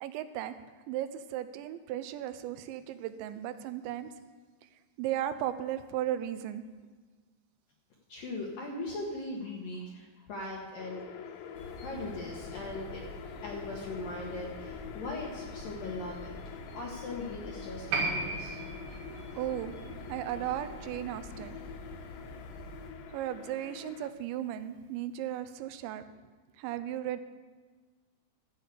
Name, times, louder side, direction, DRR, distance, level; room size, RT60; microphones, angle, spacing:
voice 1, 0.0-0.5 0.9-4.1 5.0-6.6 19.1-19.7 20.1-21.6 23.1-26.0 26.6-27.3, right 12 dB, 85° right, 11 dB, 2.9 m, -36 dB
voice 2, 8.1-11.0 11.8-13.0 13.4-16.4 16.7-18.6, left 2 dB, 65° left, -2 dB, 2.4 m, -39 dB
sound 1, 10.8-24.1, left 8 dB, 85° left, 2.9 m, -46 dB
sound 2, 11.5-22.9, equal, 45° left, 1.7 m, -47 dB
Piano, 17.9-24.9 25.1-25.2, right 3 dB, 60° right, 3.7 m, -39 dB
13.5 x 6.5 x 8.2 m, 1.4 s
omnidirectional pair, 5.2 m